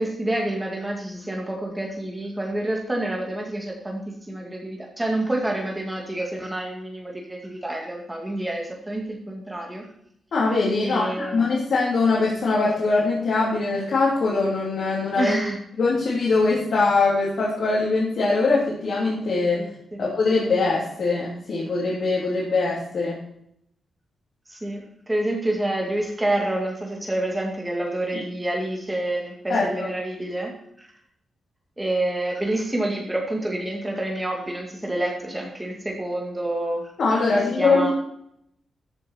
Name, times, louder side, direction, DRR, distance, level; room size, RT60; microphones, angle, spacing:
voice 1, 0.0-9.9 10.8-11.7 15.2-15.6 19.6-19.7 19.9-20.1 24.5-30.5 30.8-30.9 31.8-36.9 37.6-37.9, right 1 dB, 10° right, 0 dB, 2.3 m, -28 dB
voice 2, 10.3-15.3 15.8-19.6 20.0-23.2 28.1-28.2 29.5-29.9 37.0-37.9, left 3 dB, 55° left, -7 dB, 3.4 m, -22 dB
14.0 x 7.5 x 4.5 m, 0.72 s
wide cardioid pair, 180°, 0 cm